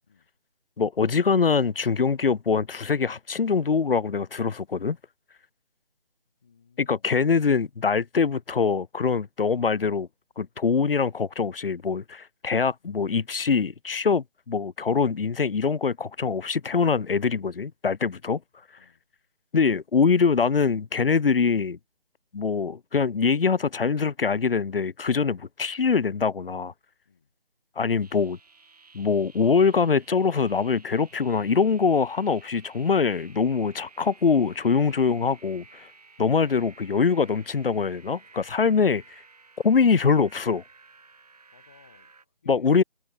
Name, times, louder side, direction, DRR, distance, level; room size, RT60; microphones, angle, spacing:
voice 1, 0.8-5.0 6.8-10.1 10.4-18.4 19.5-21.8 22.3-26.7 27.8-28.4 28.9-35.9 36.2-39.0 39.6-40.6 42.5-42.8, left 5 dB, 65° left, 0.8 m, -23 dB
voice 2, 6.4-7.1 18.8-19.0 27.0-27.3 41.5-42.8, left 6 dB, 15° left, 2.0 m, -60 dB
sound 1, 28.0-42.2, right 4 dB, 40° right, 7.4 m, -54 dB
figure-of-eight pair, 180°, 30 cm